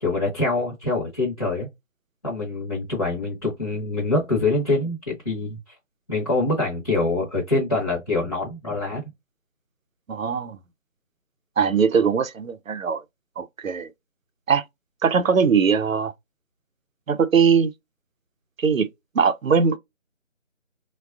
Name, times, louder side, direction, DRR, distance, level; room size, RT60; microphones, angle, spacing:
voice 1, 0.0-1.7 2.2-5.6 6.1-9.1, left 2 dB, 30° left, 0.8 m, -25 dB
voice 2, 10.1-10.6 11.6-13.0 13.4-13.9 14.5-14.6 15.0-16.1 17.1-17.7 18.6-18.9 19.1-19.8, right 6 dB, 85° right, 0.6 m, -20 dB
3.5 x 2.3 x 2.3 m
figure-of-eight pair, 160°, 39 cm